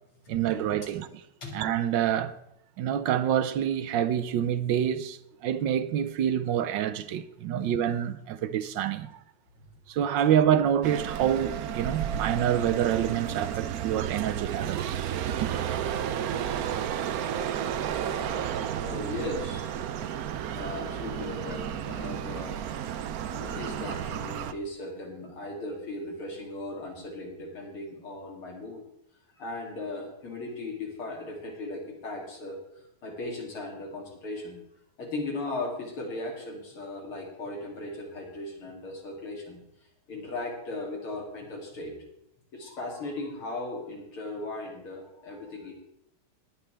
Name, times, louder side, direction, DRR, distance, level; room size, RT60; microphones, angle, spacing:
voice 1, 0.3-1.2 1.5-2.4 2.8-9.1 9.9-15.0 15.3-15.6, right 10 dB, 70° right, 1.2 m, -27 dB
sound 1, 10.8-24.5, right 9 dB, 90° right, 0.8 m, -32 dB
voice 2, 18.8-19.7 20.6-22.6 23.3-28.8 29.4-34.6 35.0-39.6 40.1-41.9 42.5-45.7, left 2 dB, 75° left, 3.7 m, -37 dB
18.5 x 9.9 x 3.4 m
omnidirectional pair, 2.4 m